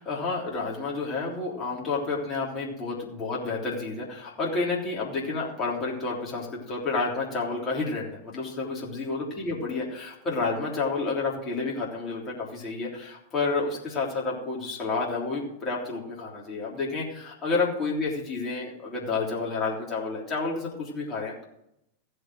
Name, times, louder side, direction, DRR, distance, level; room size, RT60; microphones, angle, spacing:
voice 1, 0.0-21.5, left 3 dB, 25° left, -4 dB, 3.4 m, -30 dB
15.5 x 6.6 x 6.3 m, 0.79 s
figure-of-eight pair, 90°, 0 cm